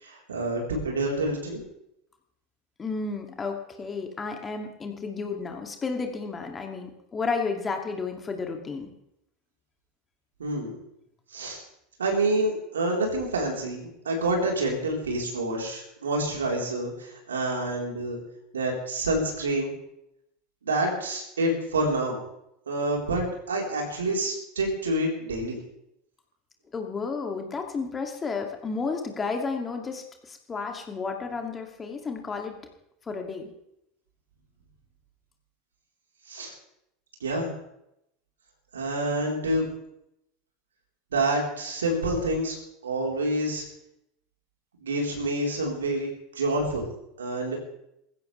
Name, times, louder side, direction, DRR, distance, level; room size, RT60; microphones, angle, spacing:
voice 1, 0.0-1.6 10.4-10.7 11.3-11.6 12.0-18.2 18.5-19.7 20.6-22.2 22.7-25.6 36.3-36.5 37.2-37.5 38.7-39.7 41.1-42.6 42.8-43.6 44.8-46.1 46.3-46.9 47.2-47.6, right 1 dB, 75° right, 0 dB, 4.0 m, -27 dB
voice 2, 2.8-8.9 26.7-32.5 33.1-33.5, left 4 dB, 20° left, 3 dB, 2.5 m, -32 dB
20.5 x 15.5 x 3.4 m, 0.80 s
figure-of-eight pair, 75°, 0 cm